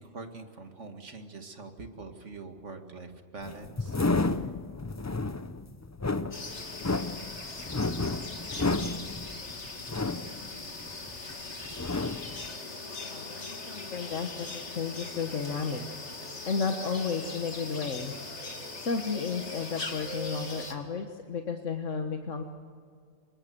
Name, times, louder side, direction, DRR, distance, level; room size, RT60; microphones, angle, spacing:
voice 1, 0.0-4.0, right 3 dB, 75° right, 5 dB, 2.3 m, -44 dB
sound 1, 3.4-11.3 11.6-12.5, left 3 dB, 20° left, 0.5 m, -31 dB
sound 2, 6.3-20.7, left 3 dB, 65° left, 2.6 m, -40 dB
voice 2, 13.0-15.8 16.5-18.5 18.8-22.4, left 5 dB, 90° left, 4 dB, 1.7 m, -33 dB
26.0 x 22.0 x 7.9 m, 2.1 s
omnidirectional pair, 1.2 m